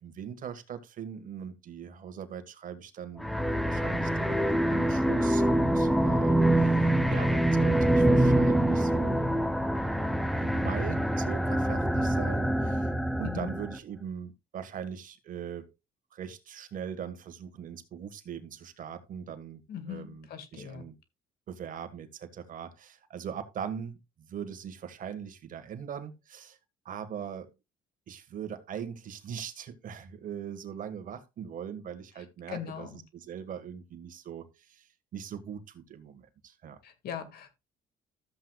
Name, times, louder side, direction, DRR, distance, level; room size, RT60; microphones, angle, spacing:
voice 1, 0.0-3.3 3.6-9.2 10.3-12.9 13.2-15.7 16.1-19.6 19.9-20.3 20.5-21.0 21.5-26.6 26.8-27.5 28.1-36.8, right 8 dB, 55° right, 1.7 m, -40 dB
sound 1, 3.2-13.8, right 1 dB, ahead, 0.8 m, -25 dB
voice 2, 13.2-13.5 19.7-20.8 32.5-33.0 36.8-37.5, left 9 dB, 65° left, 2.1 m, -40 dB
13.5 x 7.8 x 2.4 m
cardioid pair, 110°, 17 cm